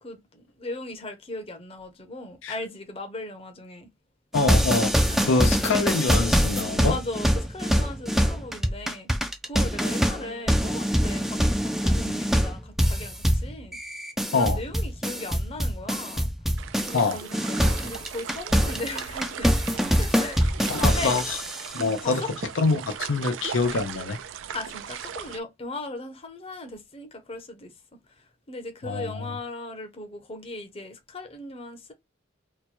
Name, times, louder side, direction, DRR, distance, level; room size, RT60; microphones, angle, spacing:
voice 1, 0.0-3.9 5.0-5.6 6.9-9.1 9.4-13.8 14.3-16.3 16.9-19.5 20.0-21.4 21.8-22.3 24.5-31.9, left 2 dB, 30° left, 0.7 m, -38 dB
voice 2, 4.3-7.0 14.3-14.6 16.9-17.2 20.7-21.2 21.7-22.2 22.6-24.2 28.8-29.3, left 4 dB, 85° left, 0.6 m, -25 dB
sound 1, 4.3-17.1 17.3-21.7, equal, ahead, 0.3 m, -24 dB
sound 2, 16.6-25.4, right 8 dB, 85° right, 0.4 m, -38 dB
3.0 x 2.2 x 4.2 m
head